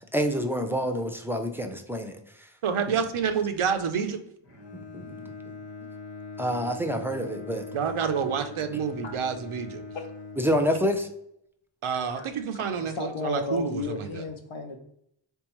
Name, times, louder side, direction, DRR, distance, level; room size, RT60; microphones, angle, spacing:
voice 1, 0.1-2.2 2.9-3.0 4.7-5.3 6.4-7.7 10.4-11.1, equal, 5° right, 5 dB, 0.6 m, -27 dB
voice 2, 2.6-4.2 7.7-9.8 11.8-14.1, right 6 dB, 90° right, 7 dB, 0.6 m, -28 dB
Bowed string instrument, 4.4-11.1, left 3 dB, 50° left, 1.1 m, -42 dB
voice 3, 12.7-14.8, left 3 dB, 70° left, 4 dB, 0.8 m, -34 dB
3.6 x 3.4 x 3.0 m, 0.75 s
wide cardioid pair, 55°, 49 cm